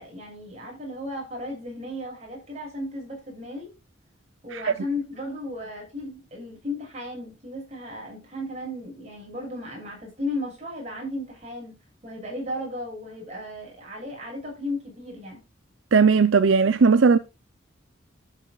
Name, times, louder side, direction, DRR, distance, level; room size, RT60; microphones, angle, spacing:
voice 1, 0.0-3.7 4.4-11.8 12.0-15.4, left 1 dB, 35° right, 6.4 m, -35 dB
voice 2, 15.9-17.2, right 5 dB, 75° right, 0.6 m, -17 dB
13.0 x 8.3 x 2.4 m
head